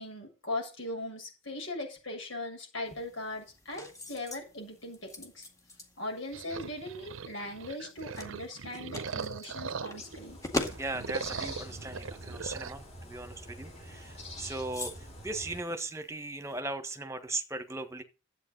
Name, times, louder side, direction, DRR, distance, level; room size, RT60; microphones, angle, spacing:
voice 1, 0.0-5.5 6.0-10.4, left 1 dB, 75° left, 7.5 m, -39 dB
sound 1, 2.8-16.6, left 1 dB, 15° left, 2.0 m, -44 dB
sound 2, 6.3-10.2 10.5-12.7, right 5 dB, 85° right, 0.7 m, -40 dB
sound 3, 9.8-15.6, equal, 35° left, 4.1 m, -46 dB
voice 2, 10.8-18.0, right 2 dB, 15° right, 1.4 m, -38 dB
12.0 x 8.5 x 5.4 m
head